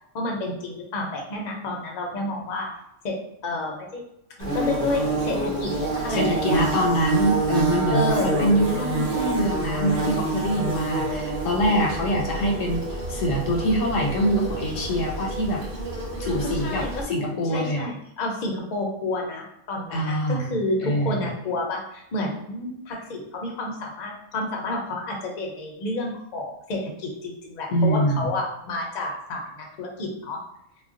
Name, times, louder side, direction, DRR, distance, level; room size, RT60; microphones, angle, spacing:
voice 1, 0.1-2.7 3.0-3.2 3.4-4.0 4.4-5.7 6.0-6.9 7.9-8.4 16.6-16.9 17.5-30.4, left 2 dB, 45° left, -1 dB, 0.6 m, -30 dB
Bird / Buzz, 4.4-17.0, right 3 dB, 45° right, 0.7 m, -27 dB
voice 2, 6.1-12.8 13.1-15.6 16.2-17.9 19.9-20.5 20.8-21.2 27.7-28.3, equal, 85° left, 0 dB, 1.0 m, -24 dB
2.4 x 2.2 x 3.6 m, 0.80 s
omnidirectional pair, 1.3 m